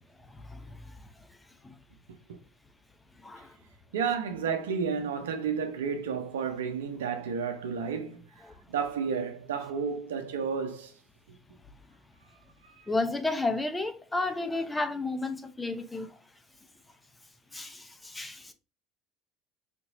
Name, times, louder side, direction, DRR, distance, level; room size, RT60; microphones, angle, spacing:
voice 1, 0.2-1.3 1.6-1.8 3.2-3.6 8.4-8.6 12.9-16.2 17.5-18.5, left 2 dB, 15° left, 0.7 m, -33 dB
voice 2, 3.9-8.2 8.7-10.9 11.3-11.4 12.7-12.9, right 6 dB, 90° right, 0.7 m, -31 dB
4.4 x 2.9 x 2.6 m
hypercardioid pair, 80°, 0 cm